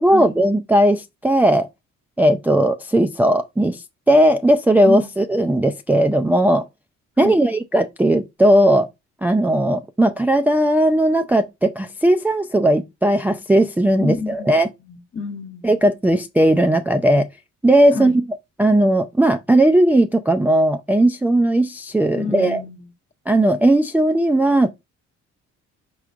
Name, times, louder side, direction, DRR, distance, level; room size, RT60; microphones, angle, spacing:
voice 1, 0.0-1.7 2.2-6.7 7.2-8.9 9.2-14.7 15.6-17.3 17.6-18.2 18.6-22.6 23.3-24.7, right 1 dB, 5° right, 0.3 m, -17 dB
voice 2, 14.0-15.8 17.9-18.2 22.1-22.9, left 4 dB, 40° left, 1.0 m, -29 dB
4.7 x 4.5 x 2.4 m
cardioid pair, 90°, 30 cm